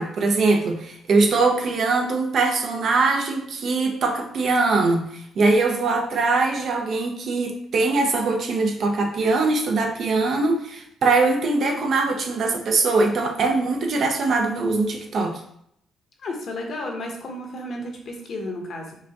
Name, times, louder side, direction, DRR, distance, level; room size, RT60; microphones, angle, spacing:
voice 1, 0.0-5.0 5.4-15.4, right 3 dB, 60° right, 3 dB, 0.7 m, -22 dB
voice 2, 16.2-19.0, left 1 dB, 60° left, 2 dB, 0.8 m, -32 dB
4.7 x 2.3 x 2.9 m, 0.72 s
cardioid pair, 90°, 0 cm